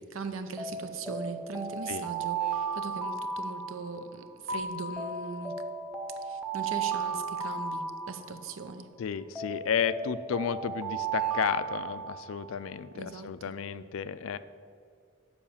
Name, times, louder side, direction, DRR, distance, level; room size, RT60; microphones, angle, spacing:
voice 1, 0.1-5.6 6.2-8.9 12.9-13.3, right 4 dB, 85° right, 9 dB, 0.7 m, -39 dB
Alarm, 0.6-4.3 5.0-8.7 9.3-12.6, right 5 dB, 5° right, 0.5 m, -35 dB
Keyboard (musical), 4.5-7.0, left 3 dB, 55° right, 1.1 m, -41 dB
voice 2, 9.0-14.4, left 7 dB, 85° left, 14 dB, 0.4 m, -32 dB
7.1 x 4.9 x 7.1 m, 2.2 s
head